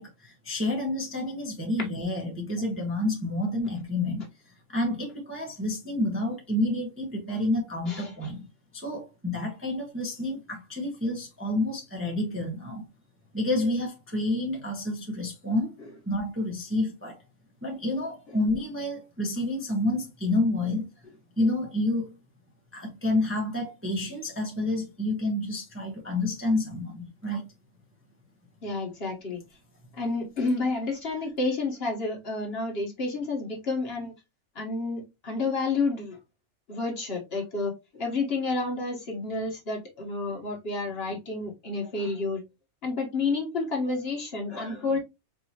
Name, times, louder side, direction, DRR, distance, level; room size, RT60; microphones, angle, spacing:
voice 1, 0.0-4.3 4.7-8.4 8.7-12.8 13.3-15.7 16.1-17.2 17.6-20.9 21.4-22.1 22.7-27.5, left 1 dB, 10° right, 0.7 m, -29 dB
voice 2, 28.6-29.4 30.0-34.1 34.5-36.2 36.7-42.4 42.8-45.0, left 3 dB, 45° left, 1.3 m, -30 dB
4.6 x 2.7 x 2.8 m
omnidirectional pair, 1.5 m